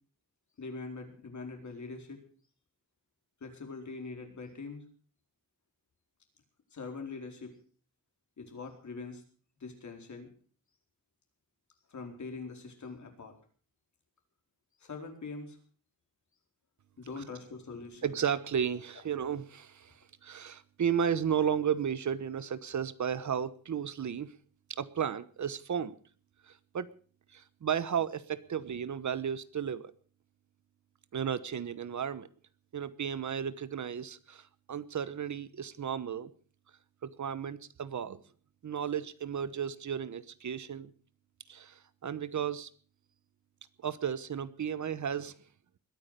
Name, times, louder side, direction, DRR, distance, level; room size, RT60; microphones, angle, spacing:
voice 1, 0.6-2.2 3.4-4.8 6.7-7.5 8.4-9.2 9.6-10.3 11.9-13.3 14.8-15.6 17.0-18.2, left 4 dB, 55° left, 4 dB, 4.5 m, -43 dB
voice 2, 18.0-19.9 20.2-24.3 24.7-25.9 26.5-26.9 27.3-29.9 31.1-32.3 32.7-36.3 37.0-38.2 38.6-40.9 41.5-42.7 43.8-45.3, right 8 dB, 60° right, 16 dB, 1.1 m, -34 dB
21.5 x 9.8 x 6.7 m, 0.43 s
wide cardioid pair, 120°, 34 cm